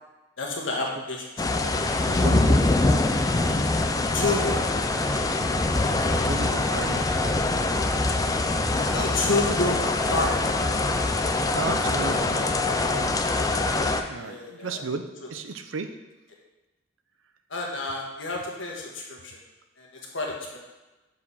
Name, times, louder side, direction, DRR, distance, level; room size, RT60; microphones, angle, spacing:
voice 1, 0.4-1.7 4.1-4.6 8.9-10.4 14.2-14.8 17.5-19.4 19.8-19.9 20.1-20.6, left 2 dB, 70° left, -1 dB, 1.5 m, -29 dB
sound 1, 1.4-14.0, left 2 dB, 20° left, 0.4 m, -24 dB
voice 2, 2.1-2.8 5.9-7.1 11.5-13.1 14.1-16.0, right 4 dB, 85° right, 8 dB, 0.6 m, -34 dB
6.5 x 4.9 x 5.6 m, 1.1 s
head